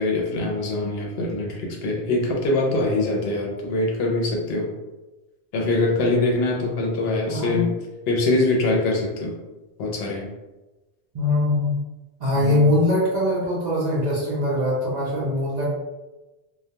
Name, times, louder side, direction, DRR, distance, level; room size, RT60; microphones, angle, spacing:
voice 1, 0.0-4.7 5.5-7.7 8.1-9.4 9.8-10.3 12.3-12.7, left 2 dB, 70° left, -1 dB, 0.8 m, -23 dB
voice 2, 7.3-7.7 11.1-11.8 12.2-15.6, left 1 dB, 55° right, -6 dB, 0.5 m, -22 dB
2.2 x 2.2 x 2.7 m, 1.1 s
omnidirectional pair, 1.1 m